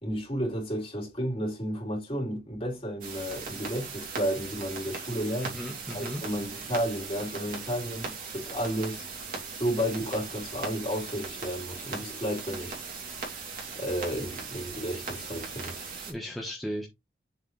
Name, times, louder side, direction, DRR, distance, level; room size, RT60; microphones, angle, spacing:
voice 1, 0.0-5.6 5.9-9.1 9.5-12.8 13.7-15.9, equal, 35° left, 4.2 m, -32 dB
sound 1, 3.0-16.1, right 4 dB, 50° right, 2.8 m, -39 dB
voice 2, 5.4-6.2 16.1-16.9, equal, ahead, 1.3 m, -36 dB
7.3 x 4.9 x 3.3 m
head